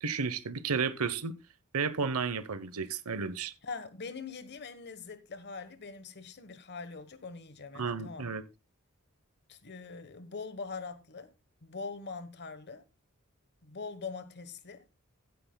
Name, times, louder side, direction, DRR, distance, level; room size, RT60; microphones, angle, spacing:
voice 1, 0.0-1.3 1.7-3.5 7.8-8.4, right 5 dB, 85° right, 0.9 m, -32 dB
voice 2, 3.6-8.3 9.5-11.3 11.6-12.8 13.6-14.8, left 4 dB, 50° left, 1.1 m, -42 dB
15.0 x 9.6 x 2.2 m
head